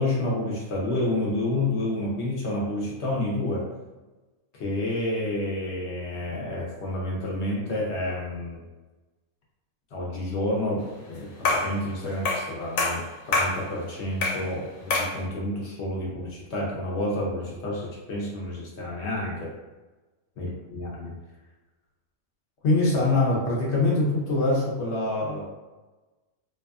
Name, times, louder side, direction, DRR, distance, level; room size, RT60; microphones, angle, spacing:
voice 1, 0.0-3.7 4.5-8.6 9.9-19.5 20.4-21.1 22.6-25.5, left 2 dB, 65° left, -4 dB, 0.8 m, -28 dB
sound 1, 11.4-11.8 12.3-12.5 12.8-13.6 14.2-14.5 14.9-15.2, left 3 dB, 80° left, 1.0 m, -25 dB
2.6 x 2.3 x 2.3 m, 1.2 s
omnidirectional pair, 1.4 m